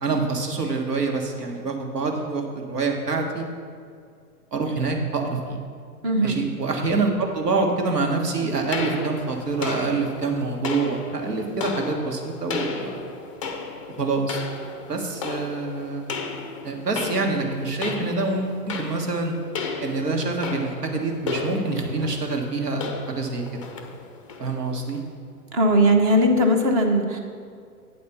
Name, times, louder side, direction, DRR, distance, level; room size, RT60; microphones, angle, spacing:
voice 1, 0.0-3.5 4.5-5.6 6.2-13.0 14.0-14.4 14.9-16.0 16.6-19.4 19.8-23.6 24.4-25.0, right 3 dB, 80° right, 2 dB, 1.5 m, -26 dB
voice 2, 6.0-6.4 25.5-27.2, equal, 25° right, 4 dB, 0.6 m, -19 dB
sound 1, 8.7-25.1, left 4 dB, 25° left, 0.4 m, -34 dB
8.6 x 4.3 x 7.0 m, 2.2 s
figure-of-eight pair, 120°, 47 cm